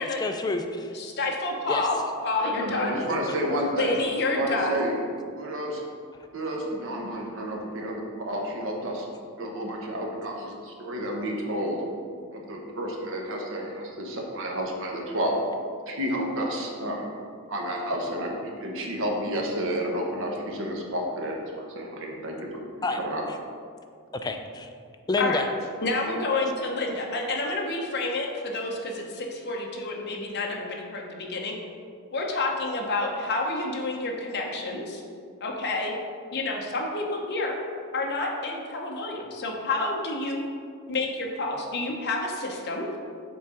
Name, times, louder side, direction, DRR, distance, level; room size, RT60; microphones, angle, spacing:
voice 1, 0.2-0.9 1.7-1.9 3.3-3.4 22.8-23.0 24.2-24.7 25.1-25.4, left 3 dB, 20° left, 5 dB, 0.4 m, -28 dB
voice 2, 0.9-2.0 2.2-3.0 3.7-4.9 25.2-25.4 25.8-31.6 32.1-35.0 35.4-35.9 36.3-37.5 37.9-40.4 40.9-42.9, left 2 dB, 50° left, 0 dB, 0.8 m, -29 dB
voice 3, 2.4-4.0 4.3-4.9 5.4-5.7 6.3-9.1 9.4-11.9 12.3-15.3 15.9-17.1 17.5-22.3 22.7-23.2, right 1 dB, 60° right, 0 dB, 1.0 m, -31 dB
7.0 x 3.6 x 4.9 m, 2.2 s
head